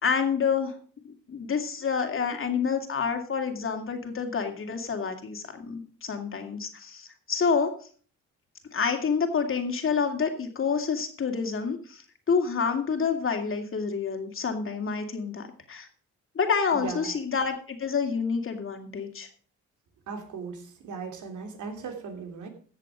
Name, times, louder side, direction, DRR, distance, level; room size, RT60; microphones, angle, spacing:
voice 1, 0.0-0.7 1.0-7.7 8.7-15.9 16.3-19.3, left 5 dB, 45° left, 4 dB, 2.5 m, -28 dB
voice 2, 20.1-22.5, right 5 dB, 75° right, 4 dB, 2.9 m, -37 dB
14.5 x 7.5 x 5.0 m, 0.43 s
cardioid pair, 90°, 30 cm